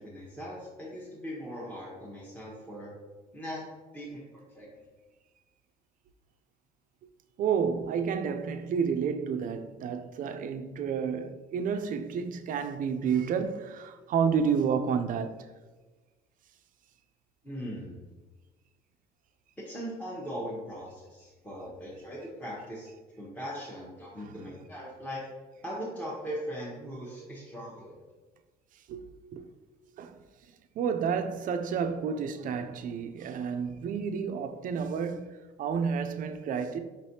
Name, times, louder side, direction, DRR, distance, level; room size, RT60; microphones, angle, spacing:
voice 1, 0.0-2.9 3.3-4.7 17.4-18.0 19.6-22.9 23.2-25.2 25.6-28.0, equal, 10° left, 0.9 m, -40 dB
voice 2, 7.4-15.5 24.2-24.4 27.1-27.3 28.9-29.5 30.0-30.2 30.8-36.8, right 6 dB, 55° right, 0.4 m, -30 dB
5.1 x 3.2 x 2.7 m
cardioid pair, 110°, 17 cm